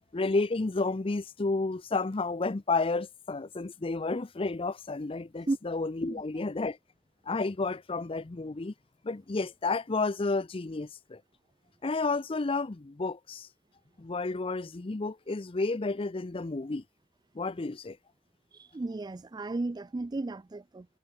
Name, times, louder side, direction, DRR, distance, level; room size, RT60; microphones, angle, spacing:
voice 1, 0.1-6.8 7.3-8.7 9.0-11.2 11.8-13.5 14.0-16.8 17.3-18.0, left 3 dB, 30° left, 0.5 m, -31 dB
voice 2, 18.5-20.9, right 2 dB, 20° right, 0.3 m, -34 dB
head